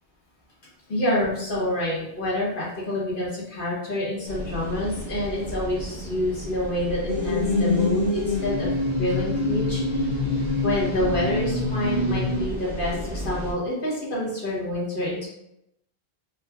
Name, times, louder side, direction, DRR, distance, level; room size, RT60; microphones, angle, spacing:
voice 1, 0.9-8.7 9.0-15.3, left 1 dB, 55° left, -5 dB, 1.2 m, -27 dB
sound 1, 4.3-13.5, equal, ahead, 0.7 m, -35 dB
sound 2, 7.1-12.5, left 2 dB, 80° right, 1.3 m, -25 dB
4.7 x 2.3 x 2.3 m, 0.83 s
omnidirectional pair, 1.1 m